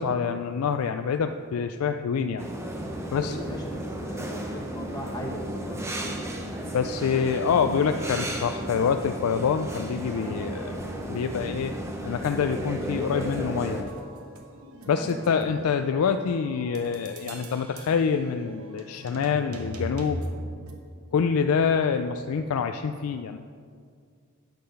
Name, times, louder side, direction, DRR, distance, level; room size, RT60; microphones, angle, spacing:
voice 1, 0.0-2.4 3.1-3.4 6.7-10.7 11.1-11.7 12.0-13.9 14.9-20.2 21.1-23.4, left 6 dB, 85° left, 7 dB, 0.4 m, -26 dB
sound 1, 2.4-13.8, right 1 dB, 15° right, 0.8 m, -34 dB
voice 2, 3.0-6.2 15.0-15.4, equal, 20° left, -1 dB, 1.3 m, -37 dB
sound 2, 13.6-20.7, equal, 85° right, 1.2 m, -40 dB
9.4 x 6.7 x 5.3 m, 2.2 s
head